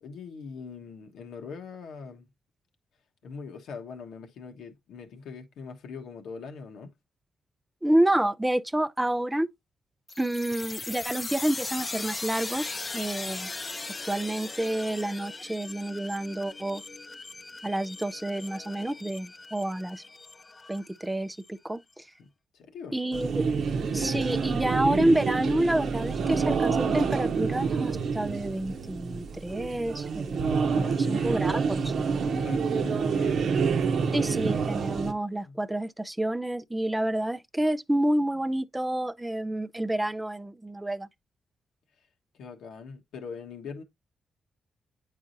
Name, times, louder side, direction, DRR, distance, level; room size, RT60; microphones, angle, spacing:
voice 1, 0.0-2.3 3.2-6.9 22.2-22.3 22.5-23.0 30.7-33.4 35.4-35.6 42.4-43.8, left 5 dB, 85° left, 1.2 m, -42 dB
voice 2, 7.8-9.5 10.2-13.5 14.0-16.8 17.6-20.0 20.7-22.0 22.9-23.5 23.9-30.5 30.7-31.8 34.1-41.1, right 1 dB, 10° right, 0.4 m, -29 dB
sound 1, 10.1-21.5, left 3 dB, 30° left, 0.6 m, -39 dB
sound 2, 23.1-35.1, right 5 dB, 70° right, 0.7 m, -27 dB
8.6 x 4.8 x 2.6 m
cardioid pair, 75°, 0 cm